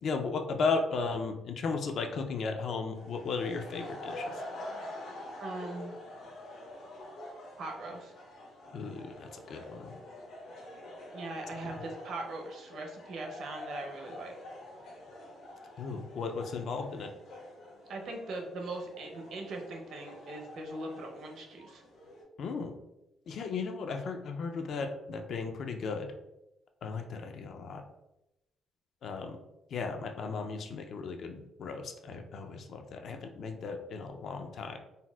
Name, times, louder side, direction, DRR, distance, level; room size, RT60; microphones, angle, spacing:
voice 1, 0.0-4.3 8.7-10.0 15.8-17.1 22.4-22.7 23.3-26.1 26.8-27.8 29.0-29.4 29.7-34.8, left 4 dB, 50° left, 5 dB, 0.3 m, -35 dB
sound 1, 2.9-22.2, left 1 dB, 80° left, 1.0 m, -46 dB
voice 2, 5.4-5.9 7.6-8.1 11.1-14.3 17.9-21.8, right 2 dB, 55° right, 2 dB, 0.5 m, -40 dB
4.0 x 2.1 x 2.2 m, 0.92 s
cardioid pair, 170°, 0 cm